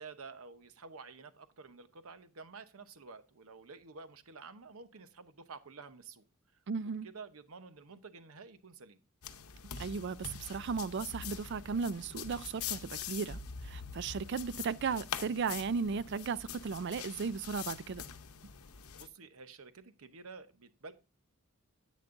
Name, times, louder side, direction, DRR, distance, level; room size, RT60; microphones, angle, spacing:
voice 1, 0.0-6.2 7.0-9.0 19.0-20.9, right 4 dB, 75° right, 0.9 m, -50 dB
voice 2, 6.7-7.1 9.8-13.4 13.6-18.0, right 5 dB, 55° right, 0.4 m, -35 dB
sound 1, 9.2-19.1, left 7 dB, 90° left, 0.8 m, -44 dB
10.5 x 8.4 x 2.5 m
head